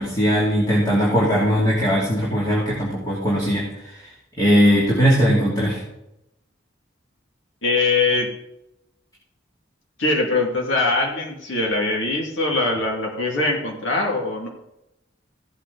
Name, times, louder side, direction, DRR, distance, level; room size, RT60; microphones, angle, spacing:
voice 1, 0.0-4.0 4.4-5.8, equal, 20° left, -6 dB, 2.8 m, -19 dB
voice 2, 7.6-8.3 10.0-14.5, left 3 dB, 80° left, -1 dB, 2.4 m, -22 dB
16.0 x 8.3 x 4.0 m, 0.87 s
head